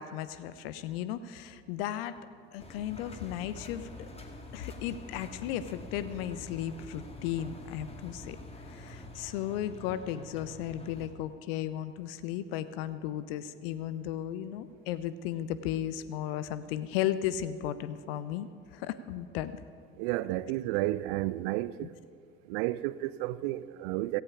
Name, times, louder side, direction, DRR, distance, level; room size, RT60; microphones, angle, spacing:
voice 1, 0.0-2.2 2.5-4.1 4.5-8.4 8.7-19.6 21.8-21.9, left 11 dB, 65° left, 0.8 m, -35 dB
Engine, 2.6-11.1, left 2 dB, 20° left, 2.1 m, -46 dB
voice 2, 20.0-21.9 22.5-24.2, right 16 dB, 60° right, 0.6 m, -32 dB
17.0 x 15.5 x 4.9 m
figure-of-eight pair, 60°, 32 cm